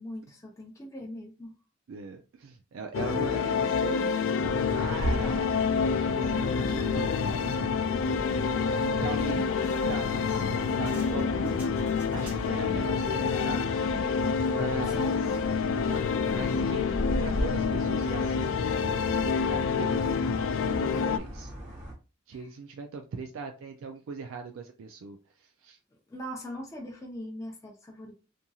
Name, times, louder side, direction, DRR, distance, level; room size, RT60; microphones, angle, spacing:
voice 1, 0.0-1.5 8.7-10.0 10.3-10.5 14.8-15.3 22.3-22.5 26.1-28.1, equal, 15° left, 0.5 m, -41 dB
voice 2, 1.9-7.6 9.0-9.5 9.8-13.8 14.5-15.1 15.7-21.5 22.3-25.8, right 5 dB, 70° right, 0.4 m, -40 dB
sound 1, 2.9-21.2, left 6 dB, 70° left, 0.3 m, -28 dB
sound 2, 4.4-21.9, equal, 40° right, 1.2 m, -38 dB
sound 3, 9.6-12.7, equal, 10° right, 1.2 m, -52 dB
2.9 x 2.6 x 2.3 m
head